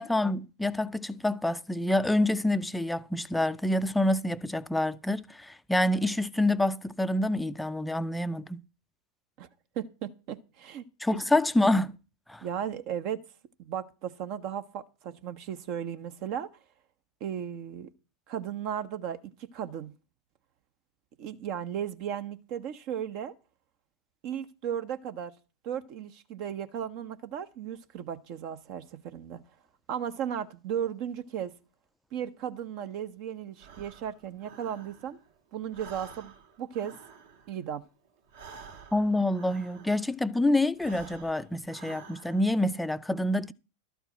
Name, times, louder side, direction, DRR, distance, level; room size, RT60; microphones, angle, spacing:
voice 1, 0.0-8.6 11.0-12.0 12.3-12.5 38.9-43.5, left 1 dB, 5° left, 0.5 m, -27 dB
voice 2, 9.8-10.9 11.1-11.2 12.4-13.2 13.6-16.5 17.2-17.9 18.3-19.9 21.2-23.3 24.2-25.3 25.6-29.4 29.9-31.5 32.1-35.2 35.5-36.9 37.5-37.8, right 9 dB, 45° right, 0.7 m, -35 dB
Breathing, 33.6-35.3 35.6-40.2 40.7-42.6, right 5 dB, 60° right, 1.7 m, -50 dB
12.5 x 4.6 x 7.7 m
figure-of-eight pair, 90°, 0 cm